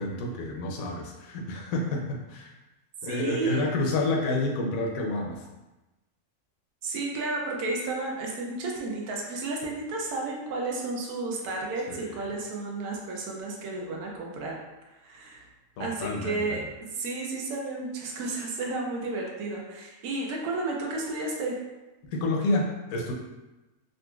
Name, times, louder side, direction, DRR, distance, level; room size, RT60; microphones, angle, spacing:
voice 1, 0.0-2.5 3.0-5.4 11.9-12.3 15.8-16.6 22.1-23.1, left 2 dB, 70° left, 0 dB, 0.9 m, -29 dB
voice 2, 3.0-3.7 6.8-14.6 15.0-15.5 15.8-21.6, right 3 dB, 85° right, -1 dB, 1.1 m, -32 dB
3.8 x 2.4 x 2.3 m, 1.1 s
omnidirectional pair, 1.6 m